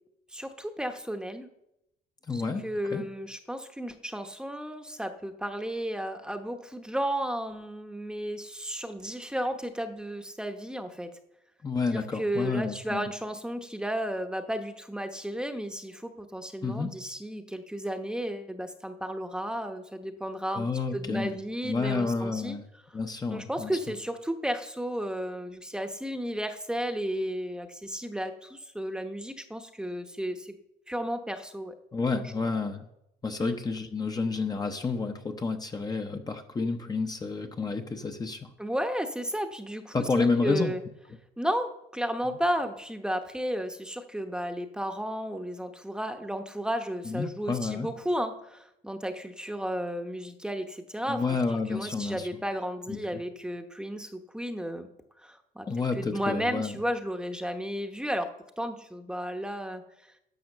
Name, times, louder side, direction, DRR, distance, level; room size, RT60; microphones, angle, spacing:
voice 1, 0.3-1.5 2.3-11.1 11.9-20.7 20.9-22.6 23.3-30.5 30.9-31.7 32.2-32.3 33.4-33.6 38.6-40.8 41.4-51.4 51.7-54.9 55.2-55.7 55.9-58.3 58.6-59.8, equal, 5° right, 6 dB, 0.9 m, -33 dB
voice 2, 2.3-3.0 11.6-13.1 16.6-16.9 20.5-21.4 21.6-22.6 22.9-23.7 31.9-32.9 33.2-38.5 39.9-40.7 42.2-42.4 47.0-47.9 51.1-52.3 52.9-53.2 55.7-56.8, left 4 dB, 25° left, 5 dB, 0.8 m, -30 dB
10.5 x 6.3 x 6.5 m, 0.83 s
cardioid pair, 110°, 17 cm